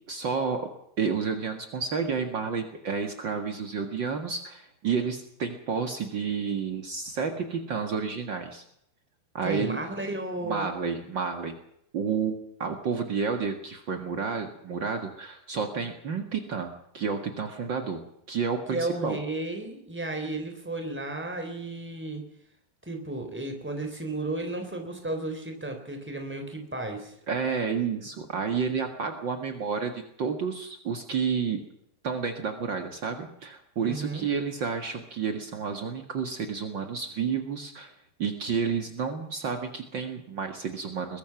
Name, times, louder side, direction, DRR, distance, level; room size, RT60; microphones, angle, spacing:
voice 1, 0.1-0.7 1.0-8.6 9.3-9.8 10.4-11.5 11.9-12.3 12.6-18.0 18.3-19.2 27.3-31.6 32.0-37.9 38.2-41.2, right 5 dB, 75° right, 5 dB, 1.0 m, -30 dB
voice 2, 9.4-10.7 18.7-22.3 22.8-27.2 33.8-34.3, right 2 dB, 5° right, 4 dB, 3.0 m, -33 dB
22.5 x 21.0 x 6.0 m, 0.74 s
omnidirectional pair, 5.0 m